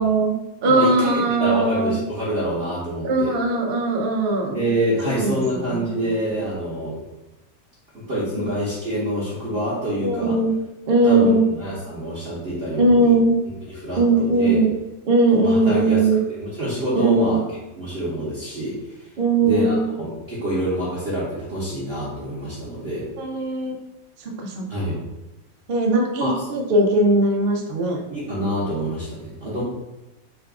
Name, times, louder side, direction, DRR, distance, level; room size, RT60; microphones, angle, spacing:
voice 1, 0.0-2.0 3.0-4.6 5.2-6.1 8.4-8.5 10.0-10.6 10.9-11.5 12.8-13.4 13.9-14.7 15.1-16.2 16.9-17.4 19.2-19.9 23.2-23.8 24.4-24.6 25.7-28.0, right 2 dB, 80° right, 1 dB, 0.5 m, -19 dB
voice 2, 0.7-3.3 4.5-6.9 7.9-10.4 11.0-13.2 13.7-14.7 15.4-16.0 16.4-17.4 17.8-19.1 19.4-23.1 24.7-25.0 26.2-26.5 28.1-29.6, equal, 45° right, -9 dB, 0.9 m, -26 dB
3.9 x 2.3 x 3.5 m, 0.98 s
omnidirectional pair, 1.8 m